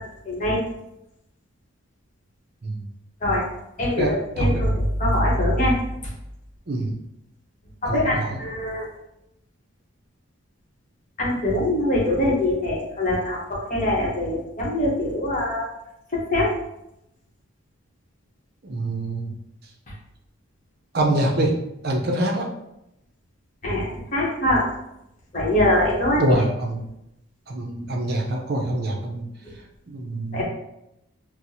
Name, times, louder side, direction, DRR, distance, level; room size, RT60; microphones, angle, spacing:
voice 1, 0.3-0.6 3.2-3.4 3.8-4.7 5.0-5.7 7.8-8.8 11.2-13.4 13.7-15.7 16.1-16.5 23.6-23.8 24.1-24.6 25.3-26.2 30.3-30.4, left 1 dB, 35° left, -4 dB, 0.9 m, -22 dB
voice 2, 4.0-4.6 6.7-6.9 7.8-8.4 18.6-19.3 20.9-21.5 21.8-22.5 26.2-26.8 27.5-29.2 29.9-30.4, right 1 dB, 50° right, 0 dB, 0.5 m, -25 dB
4.3 x 2.0 x 2.7 m, 0.84 s
head